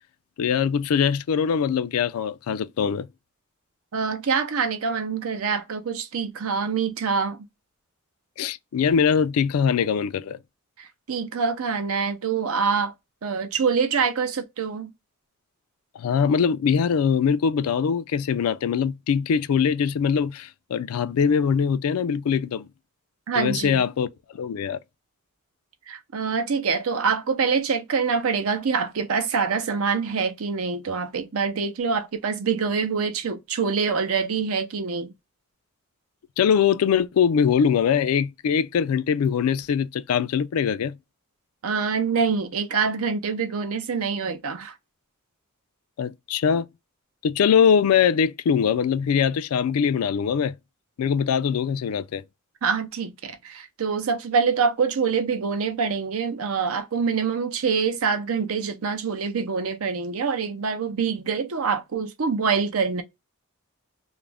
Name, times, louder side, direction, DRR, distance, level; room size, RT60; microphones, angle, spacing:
voice 1, 0.4-3.1 8.4-10.4 16.0-22.7 23.4-24.1 24.3-24.8 36.4-40.9 46.0-46.7 47.2-50.5 51.0-52.2, left 7 dB, 90° left, 0.3 m, -22 dB
voice 2, 3.9-7.4 10.8-12.9 13.2-14.9 23.3-23.9 25.9-35.1 41.6-44.7 52.6-63.0, right 5 dB, 80° right, 0.6 m, -25 dB
2.4 x 2.0 x 3.3 m
head